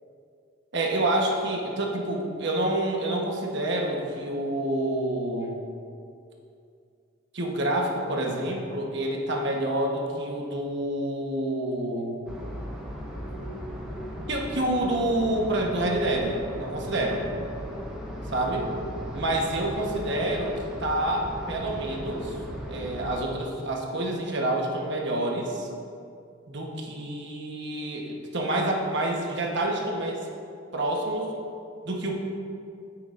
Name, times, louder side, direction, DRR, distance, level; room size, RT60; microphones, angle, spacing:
voice 1, 0.7-5.6 7.3-12.2 14.3-17.3 18.3-18.7 19.1-20.5 20.8-22.4 22.7-25.7 26.5-30.2 30.7-31.3 31.8-32.1, right 1 dB, 65° right, 0 dB, 1.1 m, -28 dB
sound 1, 12.3-23.2, equal, 5° right, 1.2 m, -37 dB
9.5 x 7.4 x 2.6 m, 2.4 s
head